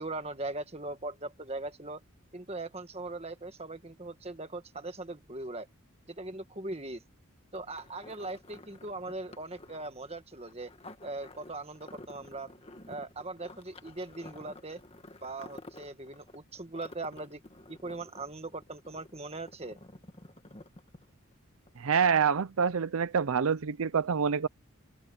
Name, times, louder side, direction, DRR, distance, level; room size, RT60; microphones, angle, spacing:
voice 1, 0.0-2.0 2.3-5.7 6.1-7.0 7.5-10.7 11.0-12.5 12.9-14.8 15.2-17.4 17.7-19.8, right 2 dB, 30° right, 1.7 m, -40 dB
sound 1, 7.5-21.3 21.7-21.8, left 2 dB, 25° left, 1.7 m, -51 dB
voice 2, 21.8-24.5, right 6 dB, 70° right, 0.5 m, -26 dB
open air
head